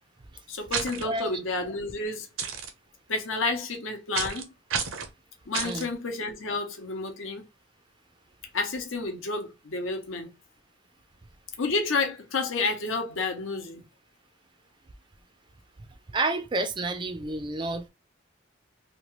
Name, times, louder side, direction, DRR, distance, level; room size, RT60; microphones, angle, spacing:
voice 1, 0.5-2.3 3.1-4.5 5.5-7.4 8.5-10.3 11.6-13.8, left 3 dB, 80° left, 0.8 m, -30 dB
sound 1, 0.7-1.0 2.4-2.7 4.1-4.4 4.7-5.1 5.5-5.9, right 6 dB, 90° right, 0.7 m, -30 dB
voice 2, 1.0-1.4 5.6-5.9 16.1-17.9, right 2 dB, 25° right, 0.3 m, -30 dB
3.0 x 2.3 x 3.0 m
head